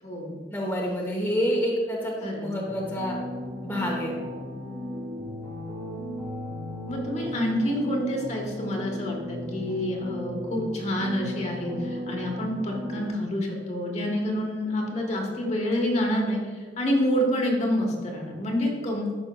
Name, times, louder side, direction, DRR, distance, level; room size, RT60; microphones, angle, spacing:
voice 1, 0.5-3.2 3.6-4.1, equal, 10° left, -3 dB, 1.0 m, -28 dB
sound 1, 2.6-13.1, left 1 dB, 55° right, 1.9 m, -35 dB
voice 2, 6.9-16.4 16.8-19.1, equal, 40° left, 0 dB, 1.3 m, -27 dB
12.0 x 5.5 x 2.3 m, 1.5 s
head